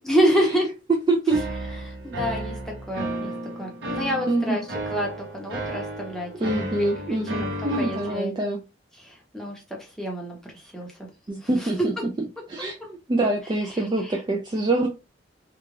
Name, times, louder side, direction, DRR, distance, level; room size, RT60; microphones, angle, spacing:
voice 1, 0.1-0.7 1.9-3.3 3.6-4.6 4.9-6.7 7.1-8.3 9.0-10.4 10.7-10.9 11.4-11.7, equal, 5° left, -2 dB, 0.8 m, -27 dB
voice 2, 1.1-1.4 2.0-2.2 4.3-4.6 6.4-8.6 11.3-11.9 12.5-14.9, right 2 dB, 25° right, 1 dB, 0.3 m, -25 dB
sound 1, 1.3-8.1, right 1 dB, 65° right, 0.8 m, -33 dB
2.4 x 2.3 x 3.1 m, 0.29 s
head